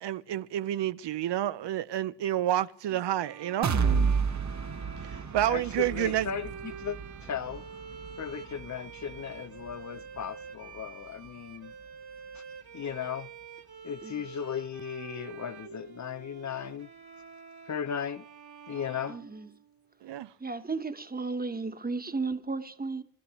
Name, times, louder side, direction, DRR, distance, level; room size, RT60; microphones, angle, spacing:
voice 1, 0.0-3.7 5.0-6.3 20.0-20.3, right 12 dB, 85° right, 0.6 m, -29 dB
sound 1, 3.1-20.0, right 6 dB, 65° right, 1.8 m, -47 dB
sound 2, 3.6-11.4 11.8-11.9 12.3-12.4, right 5 dB, 45° right, 1.0 m, -32 dB
voice 2, 5.5-7.7 8.2-11.7 12.3-12.4 12.7-13.3 13.8-16.9 17.7-18.3 18.7-19.2, left 8 dB, 45° left, 0.5 m, -36 dB
voice 3, 19.1-19.5 20.4-23.0, right 3 dB, 20° right, 1.2 m, -34 dB
27.0 x 12.0 x 3.0 m
cardioid pair, 85°, 41 cm